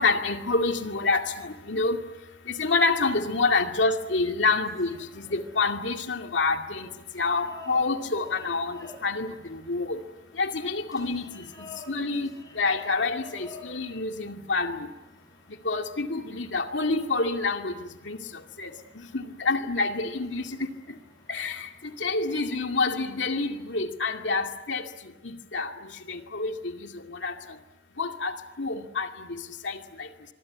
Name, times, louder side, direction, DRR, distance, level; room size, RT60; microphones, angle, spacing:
voice 1, 0.0-2.0 2.5-6.9 7.1-10.0 10.4-11.4 11.9-12.3 12.6-14.9 15.6-17.8 18.0-18.2 18.6-18.7 19.1-20.7 21.3-21.7 22.0-24.8 25.2-25.7 26.1-26.9 27.2-27.3 28.0-29.4 29.6-30.1, left 3 dB, 80° left, 2.4 m, -27 dB
sound 1, 4.6-23.8, left 2 dB, 20° left, 6.5 m, -52 dB
25.0 x 23.5 x 9.7 m
head